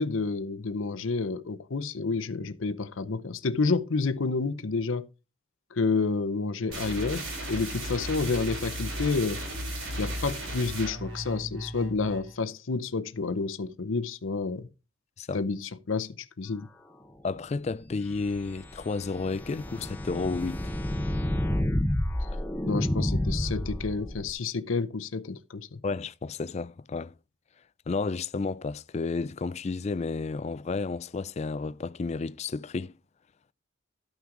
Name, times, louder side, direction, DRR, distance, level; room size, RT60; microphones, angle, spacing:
voice 1, 0.0-5.1 5.7-9.4 10.0-14.7 15.3-16.7 22.6-25.8, left 4 dB, 75° left, 0.7 m, -29 dB
sound 1, 6.7-12.3, right 1 dB, 80° right, 3.7 m, -35 dB
voice 2, 17.2-20.7 25.8-27.1 27.9-32.9, left 4 dB, 35° left, 0.3 m, -32 dB
sound 2, 18.0-24.3, left 1 dB, 10° left, 0.8 m, -30 dB
12.5 x 5.9 x 3.8 m
head